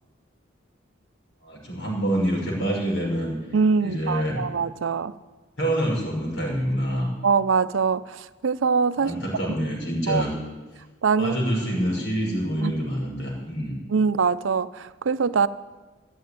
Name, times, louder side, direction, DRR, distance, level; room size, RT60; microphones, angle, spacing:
voice 1, 1.4-3.3 3.8-4.4 5.6-7.1 9.0-10.3 11.2-13.8, equal, 85° left, 5.5 m, -26 dB
voice 2, 3.5-5.1 7.2-9.1 9.4-9.5 10.1-10.2 11.0-11.3 12.6-12.7 13.9-15.5, right 5 dB, 80° right, 0.5 m, -23 dB
14.0 x 7.8 x 9.5 m
head